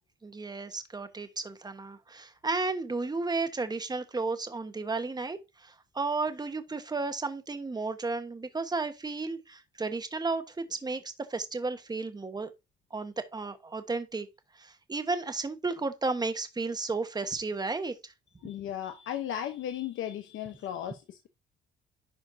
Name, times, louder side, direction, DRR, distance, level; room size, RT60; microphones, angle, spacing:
voice 1, 0.2-12.5 12.9-14.3 14.6-18.1, right 3 dB, 20° right, 1.2 m, -33 dB
voice 2, 18.4-21.3, left 10 dB, 80° left, 1.0 m, -36 dB
11.0 x 4.1 x 2.8 m
cardioid pair, 90°, 20 cm